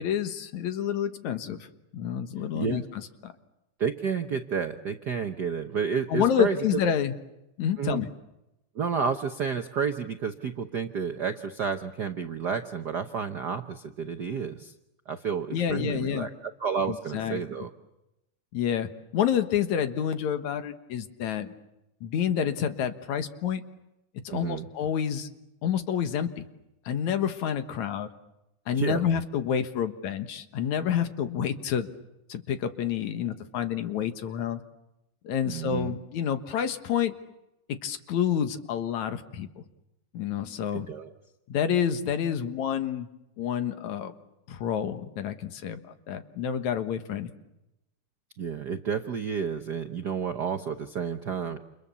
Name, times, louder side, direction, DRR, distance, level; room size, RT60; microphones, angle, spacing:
voice 1, 0.0-1.7 1.9-3.3 6.1-7.1 7.6-8.1 15.5-16.3 16.9-17.4 18.5-21.5 22.0-23.6 24.2-25.3 25.6-26.5 26.9-28.1 28.7-31.9 32.3-34.6 35.2-37.1 37.7-39.5 40.1-40.9 41.5-43.1 43.4-44.1 44.5-47.3, left 8 dB, 70° left, 9 dB, 2.7 m, -28 dB
voice 2, 2.5-2.8 3.8-6.6 7.8-8.0 8.7-14.7 15.1-17.7 24.3-24.6 28.8-29.0 35.5-35.9 40.7-41.1 48.4-51.6, right 6 dB, 65° right, 6 dB, 1.0 m, -31 dB
29.5 x 28.5 x 7.0 m, 0.91 s
omnidirectional pair, 3.4 m